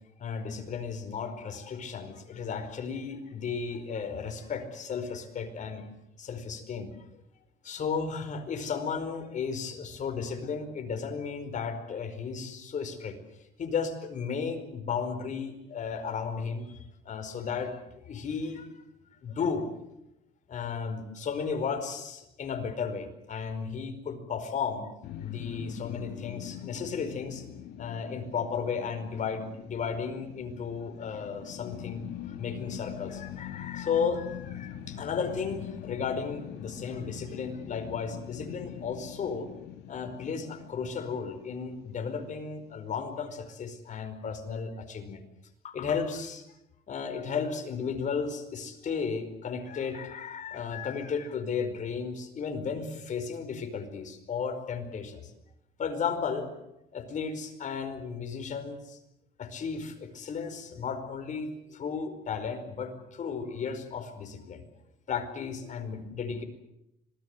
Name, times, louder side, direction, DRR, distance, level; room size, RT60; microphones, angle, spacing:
voice 1, 0.2-5.8 6.2-6.9 7.6-13.2 13.6-16.8 17.0-17.8 18.0-18.7 19.2-19.7 20.5-24.9 25.2-27.5 27.8-39.5 39.9-45.2 45.6-46.4 46.9-55.3 55.8-56.5 56.9-59.0 59.4-64.6 65.1-66.4, left 6 dB, 45° left, 7 dB, 4.9 m, -34 dB
sound 1, 25.0-42.2, left 10 dB, 80° left, 2.3 m, -43 dB
26.0 x 19.5 x 8.1 m, 0.86 s
cardioid pair, 110°, 17 cm